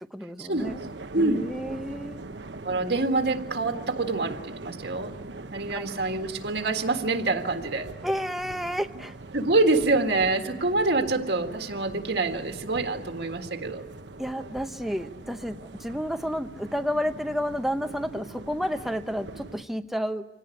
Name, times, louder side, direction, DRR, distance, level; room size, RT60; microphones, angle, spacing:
voice 1, 0.1-0.8 1.2-2.2 5.7-5.9 8.0-9.1 14.2-20.3, equal, ahead, 6 dB, 0.8 m, -31 dB
sound 1, 0.6-19.6, right 2 dB, 90° right, 1.1 m, -42 dB
voice 2, 1.1-1.4 2.6-5.1 5.5-7.9 9.3-13.9, right 3 dB, 70° right, 5 dB, 1.8 m, -26 dB
25.5 x 18.0 x 9.8 m, 1.0 s
head